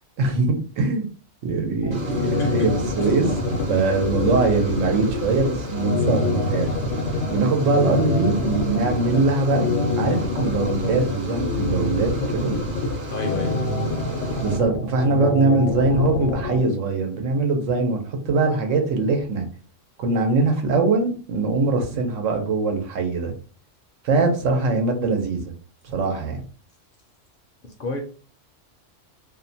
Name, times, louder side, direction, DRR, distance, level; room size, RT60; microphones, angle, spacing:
voice 1, 0.2-1.1 1.4-6.7 7.3-9.7 10.0-12.6 14.4-19.5 20.0-23.3 24.0-25.5 25.8-26.4, right 3 dB, 90° right, 3 dB, 1.0 m, -22 dB
sound 1, 1.8-16.6, left 2 dB, 90° left, 1.0 m, -25 dB
sound 2, 1.9-14.6, right 1 dB, 50° right, 0.8 m, -37 dB
voice 2, 2.2-2.7 3.0-3.1 3.8-3.9 13.1-13.6 27.6-28.0, left 2 dB, 60° left, 2 dB, 0.6 m, -30 dB
2.6 x 2.1 x 2.6 m, 0.40 s
omnidirectional pair, 1.3 m